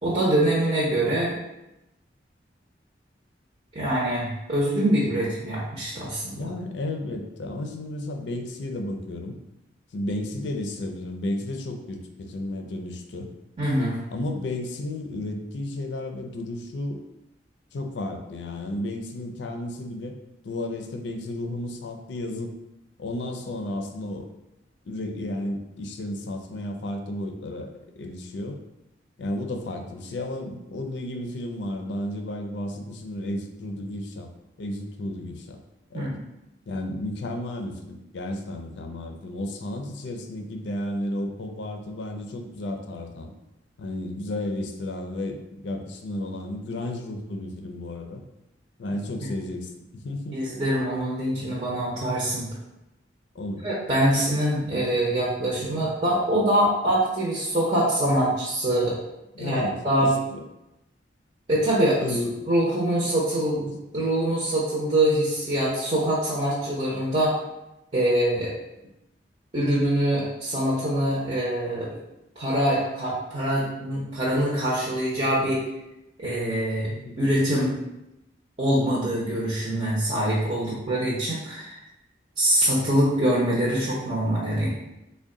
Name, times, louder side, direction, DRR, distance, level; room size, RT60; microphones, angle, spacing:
voice 1, 0.0-1.4 3.7-6.5 13.6-14.0 35.9-36.2 49.2-49.3 50.3-52.4 53.6-58.9 59.4-60.1 61.5-62.1 62.5-67.3 67.9-68.5 69.5-71.9 72.4-75.7 76.2-76.9 77.2-77.8 78.6-81.8 82.4-84.7, right 1 dB, 35° right, -7 dB, 0.7 m, -24 dB
voice 2, 6.4-9.4 9.9-13.3 14.1-17.0 17.7-20.1 20.4-22.5 23.0-24.3 24.8-28.6 29.2-34.3 34.6-35.6 35.9-36.2 36.7-43.3 43.8-48.2 48.8-50.4 53.3-53.7 55.6-55.9 59.3-59.8 60.0-60.4 62.0-62.3 76.9-77.2, left 1 dB, 75° left, 5 dB, 0.4 m, -33 dB
3.5 x 2.2 x 3.7 m, 0.91 s
head